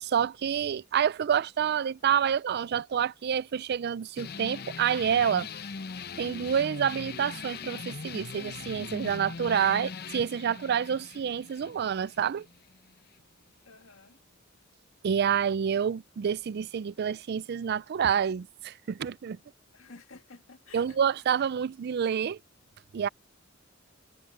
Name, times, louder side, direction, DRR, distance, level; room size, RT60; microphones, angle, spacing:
voice 1, 0.0-5.5 6.2-12.5 15.0-19.4 20.7-22.4 22.9-23.1, right 8 dB, 55° right, 0.4 m, -28 dB
sound 1, 4.2-13.2, left 5 dB, 50° left, 0.7 m, -41 dB
voice 2, 13.6-14.2 19.7-21.0, left 3 dB, 80° left, 2.0 m, -51 dB
head